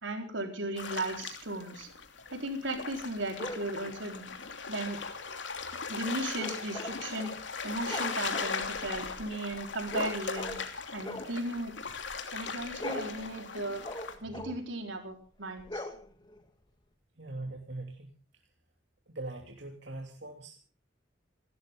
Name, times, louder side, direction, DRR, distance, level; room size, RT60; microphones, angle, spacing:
voice 1, 0.0-1.9 2.3-4.2 4.7-5.0 5.9-7.3 7.6-10.5 10.9-11.7 12.3-13.8 14.2-15.9, right 2 dB, 85° right, 4 dB, 4.3 m, -36 dB
sound 1, 0.8-14.2, left 5 dB, 75° left, 2.9 m, -39 dB
sound 2, 3.4-3.7 6.3-7.4 7.7-10.7 11.0-12.3 12.6-14.7 15.6-16.4, left 1 dB, 25° left, 1.9 m, -41 dB
voice 2, 17.2-18.1 19.1-20.6, right 2 dB, 65° right, 1 dB, 3.0 m, -41 dB
28.5 x 13.0 x 3.7 m, 0.36 s
head